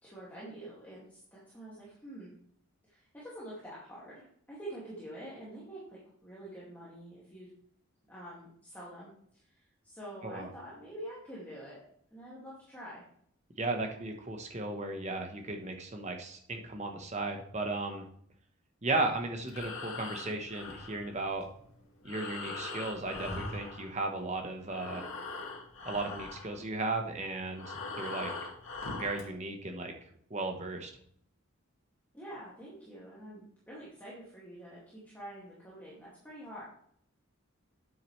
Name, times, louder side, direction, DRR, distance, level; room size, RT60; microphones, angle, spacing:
voice 1, 0.0-2.3 2.8-7.5 8.1-11.8 12.1-13.1 32.1-36.6, right 1 dB, 10° left, -8 dB, 2.2 m, -47 dB
voice 2, 13.6-18.0 18.8-21.5 22.0-25.1 25.8-28.3 28.9-29.9 30.3-30.9, right 2 dB, 30° right, 4 dB, 1.1 m, -35 dB
Breathing, 19.4-24.4 24.6-29.3, left 3 dB, 75° left, 2.0 m, -42 dB
9.3 x 7.5 x 3.2 m, 0.66 s
head